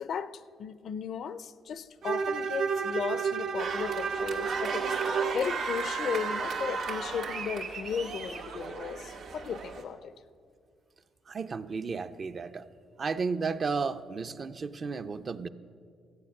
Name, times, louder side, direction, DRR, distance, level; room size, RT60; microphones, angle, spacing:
voice 1, 0.0-10.1, left 7 dB, 65° left, 0.5 m, -36 dB
Bowed string instrument, 2.0-5.4, right 6 dB, 70° right, 0.9 m, -31 dB
sound 1, 3.6-9.8, right 5 dB, 90° right, 1.9 m, -35 dB
voice 2, 11.3-12.6 13.0-15.5, right 5 dB, 40° right, 0.5 m, -33 dB
14.5 x 8.8 x 6.5 m
cardioid pair, 90°, 0 cm